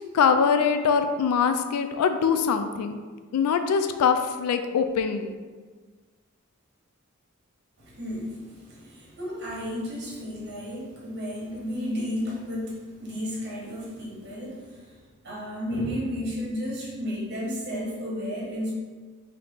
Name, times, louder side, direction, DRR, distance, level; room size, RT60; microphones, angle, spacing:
voice 1, 0.1-3.0 3.3-5.4, left 6 dB, 85° left, 8 dB, 0.3 m, -23 dB
voice 2, 7.8-18.7, equal, 50° right, -4 dB, 1.1 m, -33 dB
3.9 x 2.8 x 3.5 m, 1.4 s
head